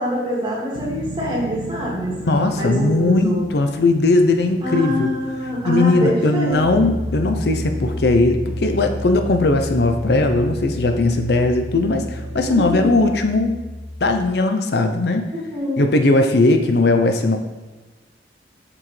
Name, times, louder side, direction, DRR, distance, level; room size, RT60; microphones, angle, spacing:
voice 1, 0.0-3.5 4.6-6.9 12.4-13.0 15.3-15.8, equal, 25° right, -4 dB, 2.1 m, -25 dB
sound 1, 0.7-12.9, right 3 dB, 90° right, 0.5 m, -37 dB
voice 2, 2.2-5.1 5.7-13.6 14.0-15.3 15.8-17.4, left 2 dB, 65° left, 6 dB, 0.6 m, -18 dB
Piano, 6.5-14.2, left 1 dB, ahead, 1.8 m, -31 dB
7.3 x 6.1 x 3.2 m, 1.3 s
head